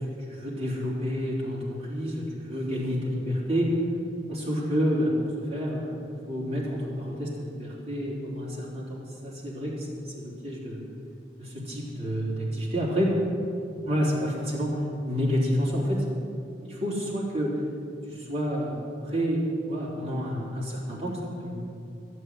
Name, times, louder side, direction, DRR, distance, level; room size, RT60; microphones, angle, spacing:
voice 1, 0.3-3.7 4.3-5.1 5.4-5.9 6.3-10.8 11.4-13.1 13.8-14.8 15.0-16.1 16.6-17.5 18.1-21.7, equal, 35° right, -6 dB, 3.6 m, -29 dB
14.5 x 7.9 x 8.1 m, 2.5 s
head